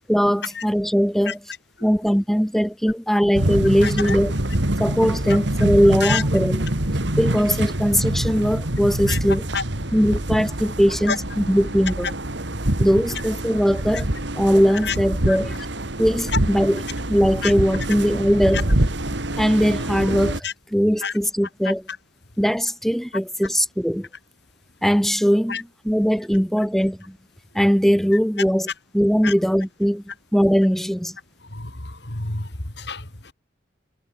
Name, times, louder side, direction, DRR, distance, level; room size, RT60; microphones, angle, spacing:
voice 1, 0.1-1.4 1.8-4.3 4.8-6.6 7.2-9.4 9.9-12.1 12.8-14.1 14.3-15.6 16.0-16.8 17.1-18.6 19.4-20.4 20.7-21.8 22.4-24.1 24.8-25.6 25.9-27.2 27.5-28.7 28.9-30.0 30.3-31.2, equal, ahead, 2.5 m, -20 dB
sound 1, 3.3-20.4, right 1 dB, 65° right, 2.8 m, -25 dB
voice 2, 3.8-4.2 6.0-6.2 9.1-9.2 9.5-10.1 11.1-11.2 13.1-13.2 13.9-14.0 14.8-15.0 15.3-15.4 16.3-16.4 17.4-17.5 18.5-18.6 20.4-20.5 21.0-21.1 21.9-22.0 25.5-25.6 29.2-29.3 31.4-33.3, left 5 dB, 60° left, 3.1 m, -29 dB
head